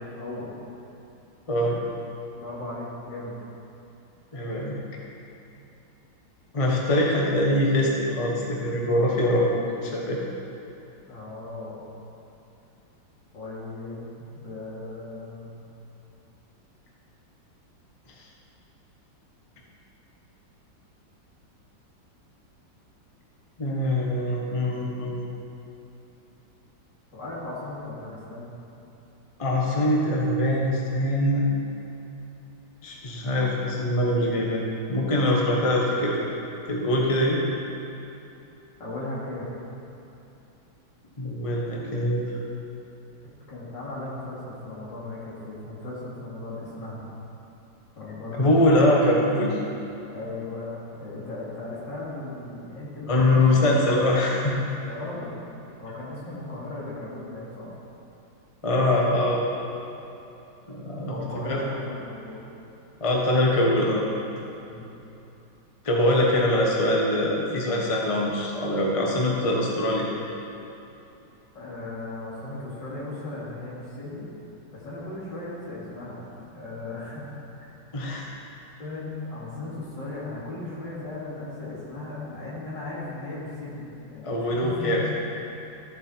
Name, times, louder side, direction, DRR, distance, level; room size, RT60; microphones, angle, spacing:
voice 1, 0.1-0.5 2.3-3.4 11.1-11.8 13.3-15.5 27.1-28.5 38.8-39.5 43.5-47.1 48.0-49.0 50.1-53.6 54.8-55.4 55.8-57.7 59.6-59.8 61.1-62.4 64.6-64.9 71.5-74.3 74.7-76.3 76.5-77.3 77.6-77.7 78.8-85.0, left 2 dB, 65° left, -7 dB, 3.1 m, -37 dB
voice 2, 1.5-1.8 4.3-4.8 6.5-10.2 23.6-25.3 29.4-31.4 32.8-34.6 34.9-36.2 36.7-37.4 41.2-42.2 48.4-49.6 53.1-54.6 58.6-59.4 60.7-61.6 63.0-64.1 65.8-70.1 77.9-78.3 84.2-85.0, left 1 dB, 20° left, -2 dB, 1.0 m, -23 dB
13.5 x 7.5 x 4.4 m, 2.9 s
omnidirectional pair, 2.1 m